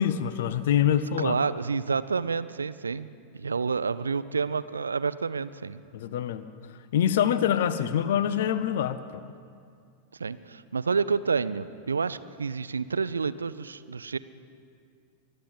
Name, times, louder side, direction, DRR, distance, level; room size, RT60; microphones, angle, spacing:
voice 1, 0.0-1.3 5.9-6.4 6.9-9.2, left 9 dB, 55° left, 13 dB, 0.6 m, -25 dB
voice 2, 1.2-5.8 10.2-14.2, right 5 dB, 75° right, 15 dB, 0.5 m, -29 dB
23.0 x 8.8 x 7.2 m, 2.3 s
figure-of-eight pair, 90°, 0 cm